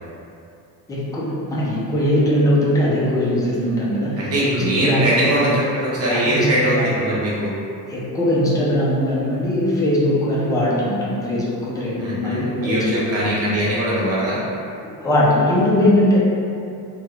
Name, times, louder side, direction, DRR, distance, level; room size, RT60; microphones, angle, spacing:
voice 1, 0.9-5.2 6.1-6.5 6.7-6.9 7.9-13.0 14.8-16.2, left 1 dB, 10° left, -7 dB, 0.4 m, -20 dB
voice 2, 4.2-7.5 12.0-14.4, right 1 dB, 35° right, -8 dB, 0.8 m, -21 dB
3.0 x 2.4 x 3.2 m, 2.6 s
cardioid pair, 145°, 42 cm